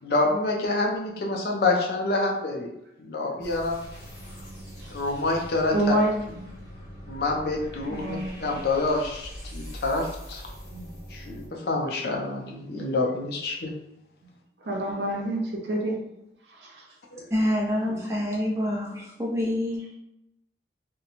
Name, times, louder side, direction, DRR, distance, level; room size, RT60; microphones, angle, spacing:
voice 1, 0.0-2.7 3.0-3.8 4.9-5.9 7.1-10.4 11.1-13.7 17.1-17.3, left 2 dB, 60° left, 0 dB, 0.5 m, -27 dB
sound 1, 3.4-11.5, equal, 20° left, 0.9 m, -42 dB
voice 2, 5.7-6.5 7.9-8.4 10.7-10.9 14.7-15.9 16.6-16.7, right 1 dB, 80° right, -1 dB, 0.7 m, -27 dB
voice 3, 17.3-19.9, left 1 dB, 15° right, -3 dB, 0.6 m, -26 dB
2.9 x 2.1 x 2.5 m, 0.83 s
head